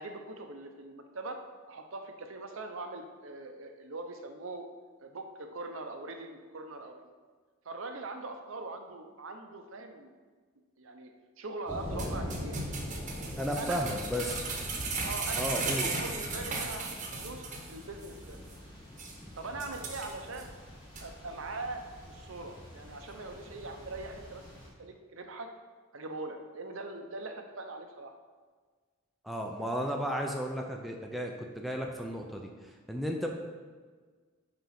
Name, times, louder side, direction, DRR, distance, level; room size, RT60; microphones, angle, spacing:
voice 1, 0.0-1.4 1.7-4.7 5.0-7.1 7.6-10.1 10.8-11.1 11.4-12.6 13.6-13.9 14.1-14.3 15.0-18.4 19.3-20.5 21.0-21.8 22.1-24.4 24.8-25.5 25.9-28.1, right 2 dB, 65° right, 5 dB, 0.7 m, -41 dB
sound 1, 11.7-24.7, left 1 dB, 20° left, 1.8 m, -43 dB
sound 2, 12.0-17.7 18.0-18.1 18.5-18.6 19.0-19.1 19.6-20.4 20.9-21.0, right 3 dB, 35° right, 1.0 m, -36 dB
voice 2, 13.4-14.4 15.4-15.9 29.2-32.5 32.9-33.3, equal, ahead, 0 dB, 0.5 m, -34 dB
5.9 x 5.1 x 5.8 m, 1.5 s
head